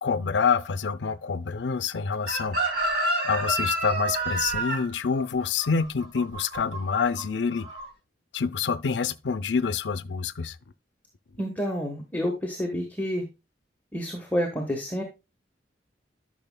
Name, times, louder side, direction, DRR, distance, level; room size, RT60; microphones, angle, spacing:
voice 1, 0.0-2.6 3.2-7.7 8.3-10.6, left 5 dB, 75° left, 0.5 m, -27 dB
Chicken rooster, 2.3-7.2 7.5-7.8, right 1 dB, 60° right, 3.8 m, -28 dB
voice 2, 11.4-13.2 13.9-15.0, equal, 10° left, 1.2 m, -29 dB
12.5 x 6.2 x 2.2 m
head